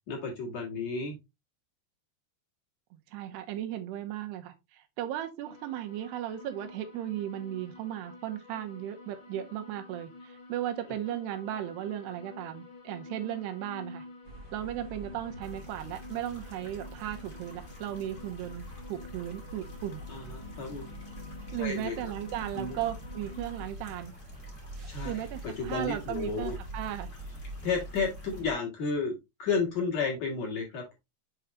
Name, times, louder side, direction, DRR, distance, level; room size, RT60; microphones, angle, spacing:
voice 1, 0.1-1.2 20.1-20.9 21.6-22.0 22.5-22.8 24.9-26.6 27.6-31.0, left 4 dB, 50° left, 2.4 m, -32 dB
voice 2, 2.9-14.1 14.5-20.0 21.5-24.1 25.0-27.1, right 12 dB, 85° right, 3.0 m, -36 dB
sound 1, 5.4-23.7, left 2 dB, 35° left, 1.7 m, -49 dB
sound 2, 14.2-28.5, right 1 dB, 55° right, 1.7 m, -44 dB
sound 3, 15.4-28.4, left 2 dB, 75° left, 0.4 m, -57 dB
7.0 x 4.9 x 3.1 m
omnidirectional pair, 4.7 m